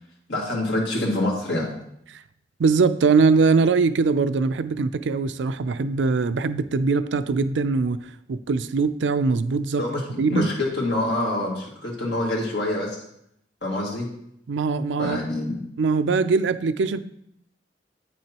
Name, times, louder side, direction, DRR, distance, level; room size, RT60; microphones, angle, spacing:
voice 1, 0.3-1.7 9.8-13.0 13.6-14.1 15.0-15.6, left 1 dB, 70° left, -3 dB, 2.0 m, -26 dB
voice 2, 2.6-8.0 8.3-9.8 10.2-10.5 14.5-15.2 15.8-17.0, right 4 dB, 90° right, 12 dB, 0.4 m, -21 dB
8.7 x 6.3 x 2.9 m, 0.74 s
head